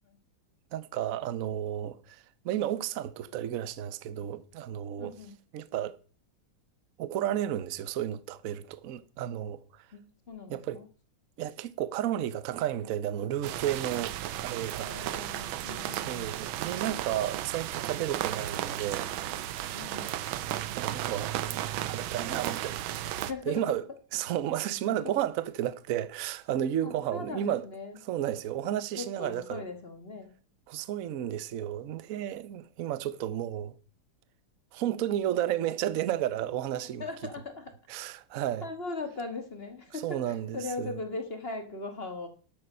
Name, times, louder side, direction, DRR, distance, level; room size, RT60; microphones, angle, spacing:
voice 1, 0.7-5.1 5.5-6.0 7.0-9.9 10.5-10.8 11.4-15.0 15.9-19.1 20.7-21.4 21.9-23.8 24.1-27.6 28.1-29.6 30.7-33.8 34.7-37.0 37.9-38.7 40.0-41.0, right 11 dB, 60° right, 0.9 m, -32 dB
voice 2, 5.0-5.4 9.9-10.9 14.7-16.3 19.7-20.2 23.3-23.7 25.0-25.1 26.8-28.0 28.6-30.3 37.0-37.7 38.6-42.3, left 3 dB, 30° left, 1.5 m, -39 dB
sound 1, 13.4-23.3, right 12 dB, 80° right, 1.5 m, -34 dB
12.0 x 7.9 x 5.5 m
omnidirectional pair, 2.2 m